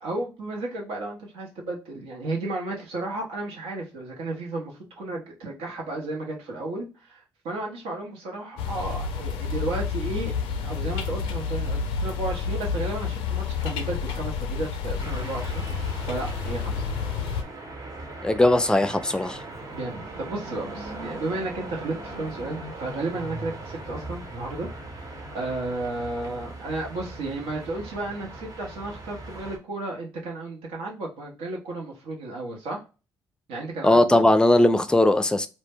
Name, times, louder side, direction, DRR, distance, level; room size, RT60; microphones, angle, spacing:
voice 1, 0.0-10.3 10.6-16.9 19.7-24.7 24.9-32.8 33.5-34.2, right 2 dB, 85° right, 0.8 m, -33 dB
sound 1, 8.6-17.4, left 5 dB, 85° left, 0.4 m, -29 dB
sound 2, 15.0-29.6, right 2 dB, 45° right, 0.8 m, -39 dB
voice 2, 18.2-19.4 33.8-35.5, left 1 dB, 10° left, 0.4 m, -19 dB
2.1 x 2.0 x 3.3 m
supercardioid pair, 55°, 9 cm